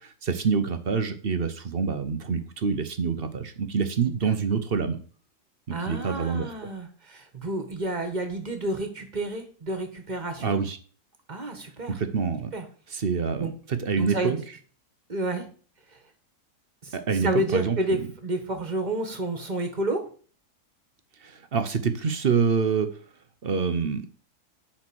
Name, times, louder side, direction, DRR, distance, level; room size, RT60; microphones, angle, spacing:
voice 1, 0.0-5.0 5.7-6.5 10.4-10.8 11.9-12.5 12.9-14.4 16.9-17.8 21.2-22.9 23.4-24.0, right 5 dB, 45° right, 9 dB, 0.9 m, -26 dB
voice 2, 5.7-10.6 11.3-12.0 12.5-12.6 13.4-13.5 14.0-14.4 15.1-15.4 16.8-16.9 17.2-20.0, right 1 dB, 30° right, 6 dB, 1.5 m, -30 dB
10.0 x 4.4 x 6.3 m, 0.42 s
omnidirectional pair, 1.7 m